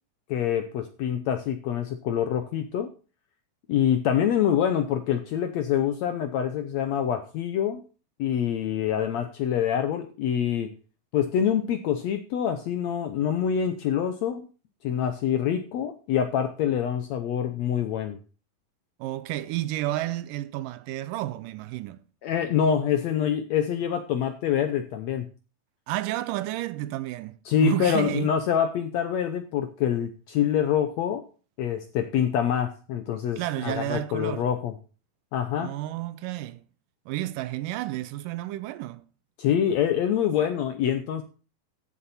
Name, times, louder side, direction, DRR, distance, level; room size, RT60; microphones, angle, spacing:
voice 1, 0.3-2.9 3.7-7.8 8.2-10.7 11.1-14.5 14.8-18.2 22.2-25.3 27.5-31.2 31.6-34.7 35.3-35.8 39.4-41.2, left 9 dB, 75° left, 1.6 m, -26 dB
voice 2, 19.0-22.0 25.9-27.4 27.6-28.3 33.4-34.5 35.6-36.6 37.1-39.1, right 15 dB, 80° right, 2.2 m, -31 dB
14.0 x 7.3 x 4.2 m
omnidirectional pair, 3.9 m